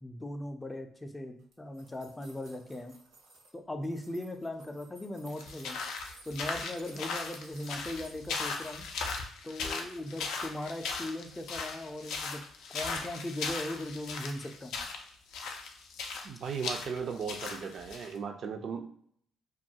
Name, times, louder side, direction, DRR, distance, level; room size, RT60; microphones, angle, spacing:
voice 1, 0.0-2.9 3.5-5.8 6.3-8.9 9.4-12.4 12.7-14.7, left 1 dB, 15° left, 5 dB, 0.4 m, -39 dB
sound 1, 1.4-3.5 3.8-9.0 9.5-10.0 10.3-10.4, right 3 dB, 90° right, 0.8 m, -57 dB
sound 2, 5.3-18.1, left 4 dB, 85° left, 0.3 m, -38 dB
voice 2, 16.2-18.9, right 6 dB, 60° right, 6 dB, 0.4 m, -37 dB
2.3 x 2.2 x 2.7 m, 0.63 s
cardioid pair, 90°, 0 cm